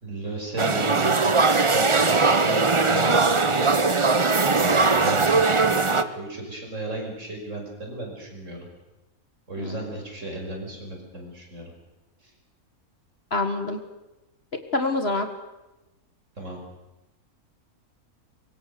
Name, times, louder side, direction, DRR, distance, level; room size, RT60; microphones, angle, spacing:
voice 1, 0.0-3.8 4.6-8.7 9.5-11.7 16.4-16.6, right 2 dB, 55° right, 1 dB, 6.1 m, -34 dB
sound 1, 0.6-6.0, right 3 dB, 25° right, 0.8 m, -20 dB
voice 2, 13.3-13.8 14.7-15.3, left 2 dB, 45° left, 7 dB, 1.9 m, -26 dB
24.5 x 22.5 x 6.9 m, 1.0 s
omnidirectional pair, 1.6 m